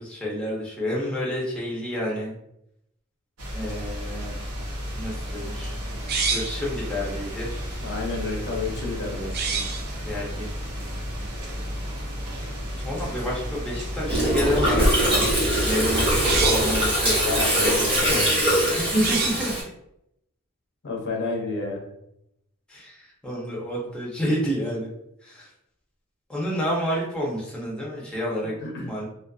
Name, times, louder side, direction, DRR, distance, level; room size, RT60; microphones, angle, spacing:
voice 1, 0.0-2.4 3.5-4.4 5.0-5.8 6.3-7.5 10.1-10.5 12.8-15.3 15.6-16.1 16.5-19.5 22.7-24.9 25.2-25.5 26.3-28.5 28.8-29.0, equal, 5° left, -4 dB, 0.6 m, -29 dB
sound 1, 3.4-17.4, equal, 75° right, 0.7 m, -33 dB
sound 2, 4.9-19.5, right 5 dB, 45° right, 0.3 m, -34 dB
voice 2, 7.8-9.6 17.2-18.2 20.8-21.9 28.4-28.9, left 3 dB, 55° left, 0 dB, 0.6 m, -30 dB
Gurgling, 14.1-19.6, right 1 dB, 25° right, 0.9 m, -22 dB
2.4 x 2.4 x 2.3 m, 0.79 s
head